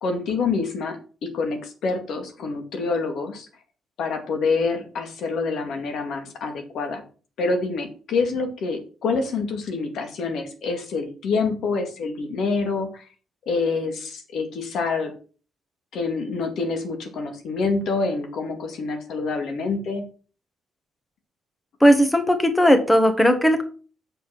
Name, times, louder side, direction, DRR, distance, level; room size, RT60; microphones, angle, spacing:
voice 1, 0.0-3.5 4.0-7.0 7.4-13.0 13.5-15.1 15.9-20.0, left 4 dB, 70° left, 5 dB, 2.1 m, -26 dB
voice 2, 21.8-23.6, equal, 10° left, 8 dB, 1.4 m, -17 dB
7.8 x 5.2 x 6.1 m, 0.38 s
cardioid pair, 90°, 0 cm